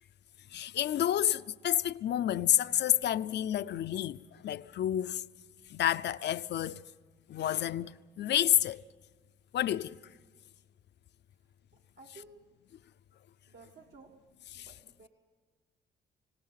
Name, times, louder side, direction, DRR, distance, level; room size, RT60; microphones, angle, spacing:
voice 1, 0.5-5.3 5.7-6.9 7.3-8.8 9.5-10.0 14.5-14.7, left 11 dB, 60° left, 0.5 m, -29 dB
voice 2, 11.7-12.5 13.5-14.2 14.5-15.1, right 3 dB, 60° right, 1.5 m, -55 dB
29.5 x 17.5 x 5.7 m
cardioid pair, 90°, 20 cm